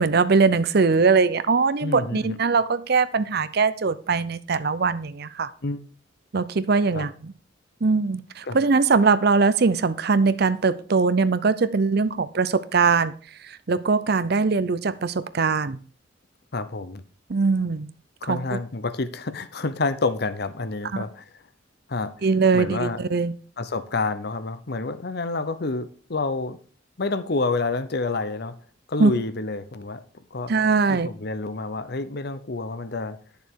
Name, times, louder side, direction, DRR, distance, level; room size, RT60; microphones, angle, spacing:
voice 1, 0.0-5.5 6.3-7.3 7.8-13.1 13.4-15.8 17.3-17.9 18.2-18.6 20.9-21.0 22.2-23.3 29.0-29.1 30.5-31.1, right 4 dB, 55° right, 14 dB, 0.6 m, -21 dB
voice 2, 1.8-2.4 5.6-5.8 6.9-7.1 8.5-8.6 16.5-17.0 18.2-21.2 21.9-22.1 22.5-23.0 23.6-26.6 27.0-28.5 28.9-30.0 30.3-30.5 30.9-33.2, left 3 dB, 55° left, 12 dB, 0.8 m, -28 dB
10.5 x 6.9 x 4.6 m, 0.40 s
head